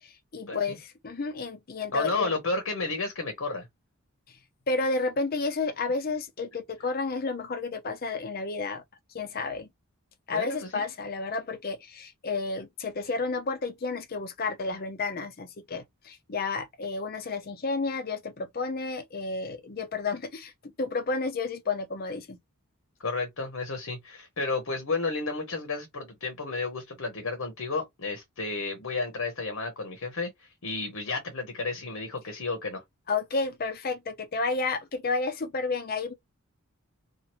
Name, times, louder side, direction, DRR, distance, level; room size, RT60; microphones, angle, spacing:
voice 1, 0.0-2.3 4.7-8.8 9.1-9.7 10.3-22.4 33.1-36.1, left 3 dB, 40° left, 0.5 m, -31 dB
voice 2, 1.9-3.7 10.3-10.8 23.0-32.8, left 3 dB, 65° left, 0.9 m, -32 dB
2.8 x 2.5 x 3.0 m
head